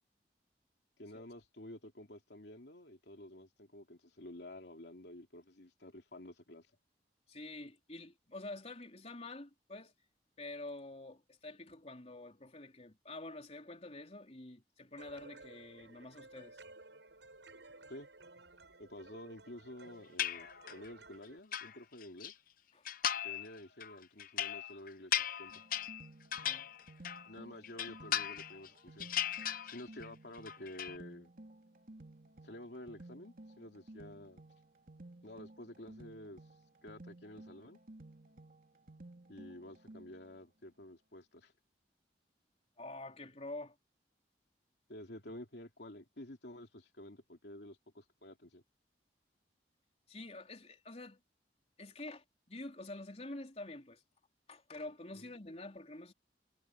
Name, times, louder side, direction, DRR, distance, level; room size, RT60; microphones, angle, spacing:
voice 1, 1.0-6.7 17.9-18.1 18.8-22.3 23.2-25.6 27.3-29.1 29.6-31.3 32.4-34.4 35.2-36.4 36.8-37.8 39.3-41.5 44.9-48.6 55.1-55.3, left 1 dB, 75° left, 2.9 m, -50 dB
voice 2, 7.3-9.9 10.4-16.6 22.7-23.2 26.3-26.7 42.8-43.8 50.1-51.2 51.8-54.0 54.5-56.1, left 2 dB, 35° left, 3.9 m, -47 dB
sound 1, 15.0-21.4, right 2 dB, 85° right, 8.0 m, -56 dB
sound 2, 20.2-20.9 21.3-22.3 22.9-23.5 23.8-27.3 27.6-28.7 29.0-30.1 30.3-31.0, left 10 dB, 50° left, 0.8 m, -37 dB
sound 3, 25.5-40.4, right 2 dB, 50° right, 3.0 m, -55 dB
head